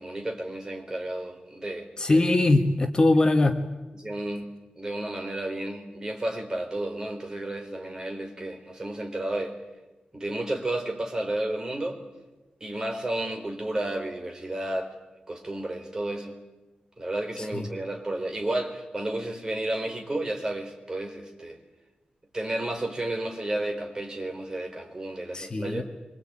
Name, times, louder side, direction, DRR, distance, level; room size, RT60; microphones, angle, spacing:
voice 1, 0.0-1.9 4.0-4.4 4.8-9.6 10.1-12.0 12.6-14.9 15.3-16.4 17.0-21.6 22.3-25.8, right 1 dB, 25° right, 3 dB, 4.3 m, -32 dB
voice 2, 2.0-3.6 17.4-17.7 25.3-25.8, left 2 dB, 30° left, 5 dB, 1.7 m, -22 dB
26.0 x 25.0 x 8.9 m, 1.1 s
wide cardioid pair, 160°, 3 cm